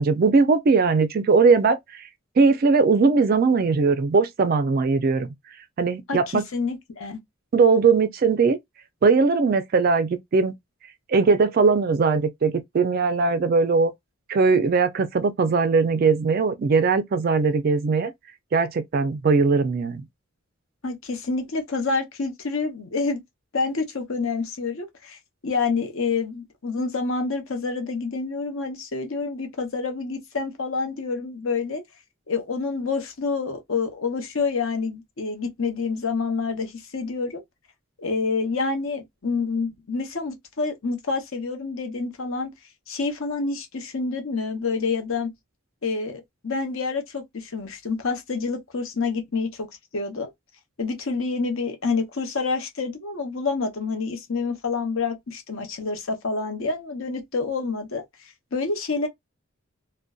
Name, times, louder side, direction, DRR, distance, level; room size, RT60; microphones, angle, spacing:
voice 1, 0.0-1.8 2.4-5.3 5.8-6.4 7.5-8.6 9.0-10.5 11.1-13.9 14.3-18.1 18.5-20.0, right 4 dB, 45° right, 0.3 m, -20 dB
voice 2, 6.1-7.2 20.8-23.2 23.5-31.8 32.3-37.4 38.0-42.5 42.9-45.3 45.8-49.7 49.9-50.3 50.8-59.1, left 4 dB, 65° left, 0.7 m, -28 dB
2.5 x 2.1 x 2.3 m
head